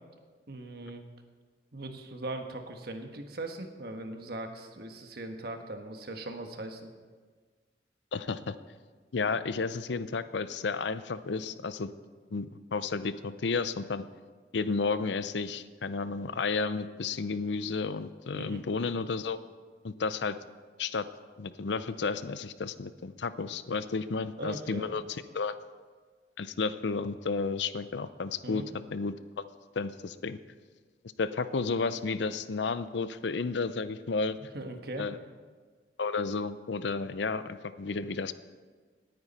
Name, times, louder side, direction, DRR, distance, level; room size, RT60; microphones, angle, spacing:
voice 1, 0.5-1.0 1.7-6.9 18.3-18.6 24.4-25.1 28.4-28.7 34.5-35.1, right 2 dB, 60° right, 5 dB, 1.3 m, -40 dB
voice 2, 8.1-8.6 9.1-11.9 12.3-14.0 14.5-19.4 19.8-20.4 20.8-21.0 21.4-25.0 25.3-25.6 26.4-28.6 28.9-29.4 29.8-30.4 31.2-34.4 35.0-35.2 36.0-38.3, left 4 dB, 90° left, 13 dB, 0.6 m, -32 dB
19.0 x 9.5 x 4.2 m, 1.5 s
head